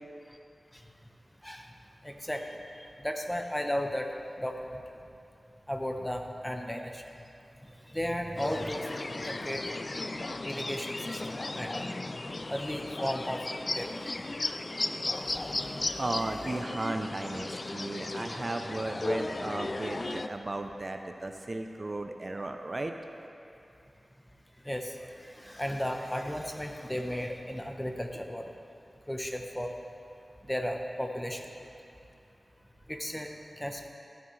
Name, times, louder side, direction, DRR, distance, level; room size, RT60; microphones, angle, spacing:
voice 1, 2.0-2.5 3.0-4.1 4.4-4.8 5.7-7.0 7.9-8.9 9.1-9.6 10.4-11.8 12.5-13.4 13.7-14.0 15.3-15.4 15.8-16.0 24.7-24.9 25.4-28.5 29.1-29.7 30.5-31.4 32.9-33.9, equal, 10° left, 3 dB, 0.8 m, -34 dB
sound 1, 8.4-20.3, left 2 dB, 45° left, 0.3 m, -35 dB
voice 2, 16.0-22.9, right 2 dB, 40° right, 5 dB, 0.5 m, -35 dB
13.0 x 9.3 x 3.2 m, 2.6 s
wide cardioid pair, 70°, 0 cm